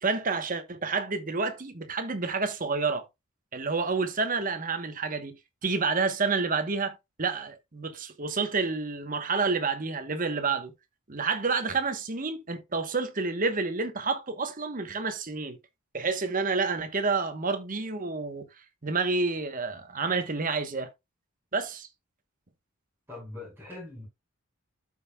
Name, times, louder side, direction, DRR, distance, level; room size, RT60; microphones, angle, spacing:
voice 1, 0.0-3.1 3.5-10.7 11.1-15.6 15.9-18.5 18.8-20.9 21.5-21.9, right 4 dB, 40° right, 1.0 m, -29 dB
voice 2, 23.1-24.1, left 2 dB, 10° right, 5.2 m, -42 dB
13.0 x 5.6 x 2.3 m
head